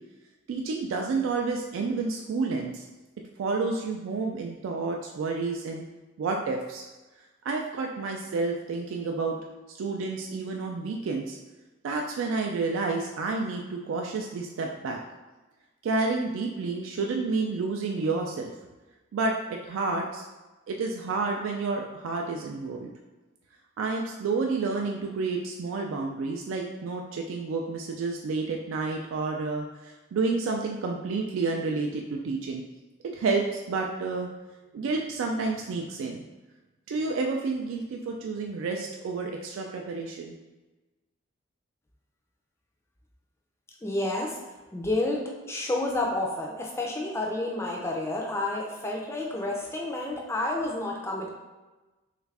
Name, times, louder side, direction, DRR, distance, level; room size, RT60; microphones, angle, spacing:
voice 1, 0.5-2.9 3.4-5.8 6.2-6.9 7.4-9.4 9.7-11.4 11.8-15.0 15.8-18.5 19.1-20.2 20.7-22.9 23.8-32.6 33.0-34.3 34.7-36.2 36.9-40.3, right 3 dB, 75° right, 1 dB, 0.3 m, -30 dB
voice 2, 43.8-44.4 44.7-51.3, left 2 dB, 15° left, -1 dB, 0.4 m, -30 dB
3.4 x 2.4 x 3.2 m, 1.2 s
head